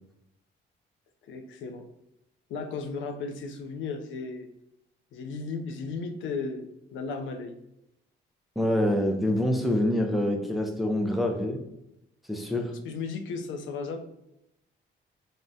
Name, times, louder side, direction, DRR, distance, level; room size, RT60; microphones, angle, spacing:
voice 1, 1.3-1.9 2.5-4.5 5.1-6.7 6.9-7.6 12.5-14.0, left 4 dB, 75° left, 6 dB, 0.4 m, -35 dB
voice 2, 8.6-11.6 12.3-12.8, left 1 dB, ahead, 3 dB, 0.4 m, -26 dB
3.4 x 2.1 x 2.5 m, 0.83 s
cardioid pair, 90°, 20 cm